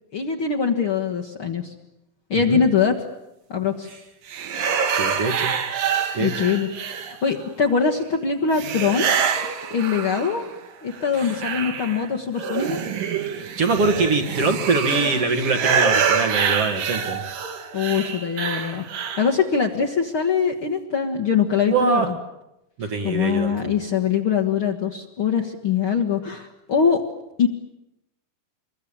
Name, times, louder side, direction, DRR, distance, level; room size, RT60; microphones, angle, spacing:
voice 1, 0.1-1.7 2.3-3.1 3.5-3.9 6.2-6.7 7.0-9.1 9.7-10.4 10.8-12.8 17.7-22.2 22.8-27.0 27.4-27.5, left 6 dB, 50° left, 0 dB, 1.8 m, -23 dB
sound 1, 4.3-7.5 8.5-10.6 10.9-19.4, right 6 dB, 70° right, 3.4 m, -26 dB
voice 2, 4.9-5.5 6.1-6.3 11.2-11.5 13.6-17.2 21.7-22.1 22.8-23.7, right 4 dB, 45° right, 4 dB, 2.8 m, -23 dB
26.5 x 22.5 x 8.7 m, 0.88 s
omnidirectional pair, 4.1 m